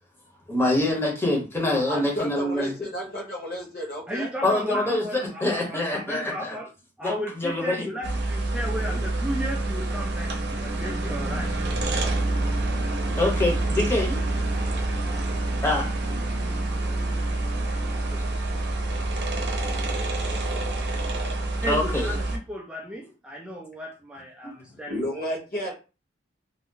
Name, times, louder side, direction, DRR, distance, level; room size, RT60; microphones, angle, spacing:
voice 1, 0.5-2.7 4.4-6.6 7.0-7.9 8.9-9.0 10.5-10.6 13.1-14.2 15.6-15.9 18.1-18.2 21.6-22.2, left 1 dB, 15° left, -1 dB, 0.8 m, -25 dB
voice 2, 1.8-4.3 24.9-25.7, equal, 50° left, -1 dB, 1.0 m, -32 dB
voice 3, 4.1-6.7 7.0-10.3 10.6-11.5 21.6-25.0, equal, 5° right, -2 dB, 0.4 m, -34 dB
sound 1, 8.0-22.4, right 2 dB, 60° right, 0.7 m, -27 dB
2.6 x 2.0 x 3.7 m, 0.33 s
head